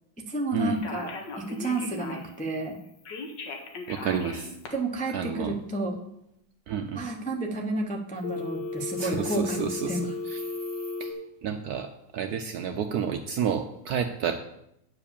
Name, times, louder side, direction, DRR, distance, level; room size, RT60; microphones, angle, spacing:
voice 1, 0.2-2.8 4.7-6.0 6.9-10.0, right 2 dB, 15° left, 0 dB, 0.3 m, -31 dB
Telephone, 0.7-2.4 3.0-4.7 8.2-11.1, left 3 dB, 65° left, 1.8 m, -35 dB
voice 2, 3.9-4.5 5.1-5.6 6.7-7.0 9.0-10.5 11.0-11.1 11.4-14.3, right 7 dB, 75° right, 6 dB, 0.9 m, -30 dB
9.3 x 4.9 x 7.0 m, 0.80 s
omnidirectional pair, 2.1 m